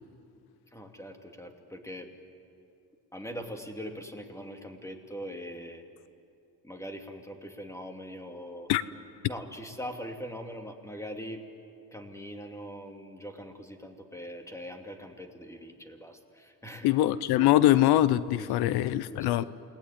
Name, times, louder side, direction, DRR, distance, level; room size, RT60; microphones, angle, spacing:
voice 1, 0.7-2.1 3.1-5.8 6.6-8.7 9.3-11.4 11.9-16.9 17.4-17.5 18.4-18.5 18.8-19.5, equal, 10° left, 4 dB, 2.7 m, -42 dB
voice 2, 16.8-19.4, left 14 dB, 85° left, 16 dB, 0.7 m, -23 dB
29.0 x 19.5 x 9.9 m, 2.7 s
cardioid pair, 110°, 37 cm